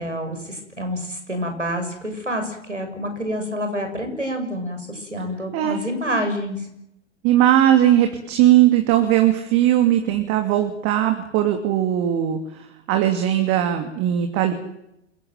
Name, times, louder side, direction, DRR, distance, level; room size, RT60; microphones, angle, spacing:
voice 1, 0.0-6.7, equal, 90° right, 5 dB, 6.9 m, -28 dB
voice 2, 7.2-12.4 12.9-14.5, right 12 dB, 40° right, 5 dB, 2.8 m, -18 dB
28.5 x 17.5 x 9.3 m, 0.82 s
figure-of-eight pair, 95°, 35 cm